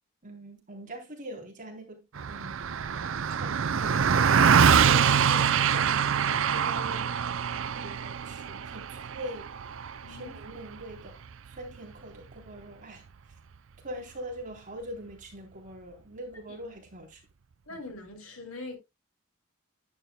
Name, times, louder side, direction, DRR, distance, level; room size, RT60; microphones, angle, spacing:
voice 1, 0.2-2.8 3.3-7.1 7.7-9.6 10.1-11.2 11.5-13.0 13.8-17.2 17.7-17.8, right 1 dB, 35° right, 3.7 m, -43 dB
Car passing by, 2.2-11.8, right 7 dB, 60° right, 0.5 m, -25 dB
voice 2, 10.0-10.4 16.5-16.6 17.7-18.8, left 2 dB, 75° left, 3.7 m, -42 dB
11.0 x 9.4 x 2.3 m
head